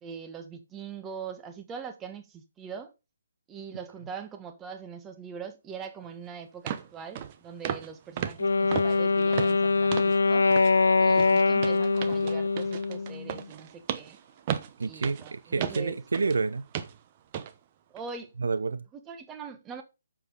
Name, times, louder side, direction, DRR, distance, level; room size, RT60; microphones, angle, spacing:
voice 1, 0.0-2.9 3.5-10.5 11.0-14.2 14.8-16.0 17.9-18.3 18.9-19.8, right 6 dB, 15° right, 1.3 m, -42 dB
sound 1, 6.0-6.1 6.7-6.9 7.2-7.4 7.6-7.9 8.2-10.2 10.5-10.8 11.1-16.4 16.7-17.0 17.3-17.5 18.0-18.1, right 9 dB, 30° right, 0.9 m, -35 dB
Wind instrument woodwind instrument, 8.4-13.4, left 4 dB, 75° left, 0.5 m, -23 dB
voice 2, 14.8-16.6 18.4-18.9, right 4 dB, 75° right, 0.7 m, -29 dB
8.5 x 7.2 x 4.1 m
hypercardioid pair, 150°, 0 cm